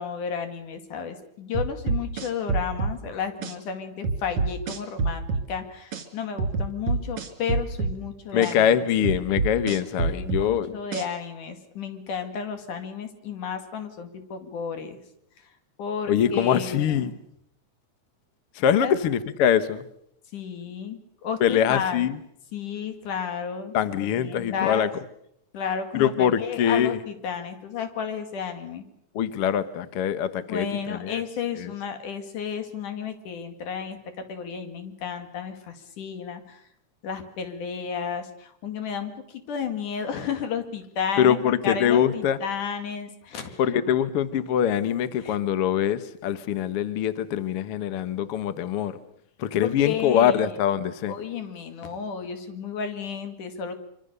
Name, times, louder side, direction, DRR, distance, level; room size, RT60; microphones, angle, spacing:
voice 1, 0.0-8.7 10.1-15.0 15.4-15.5 15.8-17.1 18.8-19.0 20.3-22.1 22.5-24.9 25.5-28.9 30.5-34.0 34.3-36.6 37.0-43.6 45.2-45.4 49.6-50.5 51.1-53.8, left 7 dB, 85° left, 7 dB, 3.7 m, -32 dB
sound 1, 1.5-3.0 3.4-3.5 4.0-5.5 5.9-6.0 6.4-8.0 8.4-8.5 9.0-10.5 10.9-11.1, right 4 dB, 50° right, 3.5 m, -26 dB
voice 2, 8.3-10.8 16.1-17.1 18.6-19.8 21.4-22.2 23.7-24.9 25.9-27.0 29.1-31.2 31.6-31.7 41.2-42.4 43.6-49.0 49.4-51.1, left 9 dB, 60° left, 13 dB, 1.8 m, -23 dB
25.0 x 25.0 x 6.8 m, 0.74 s
omnidirectional pair, 3.5 m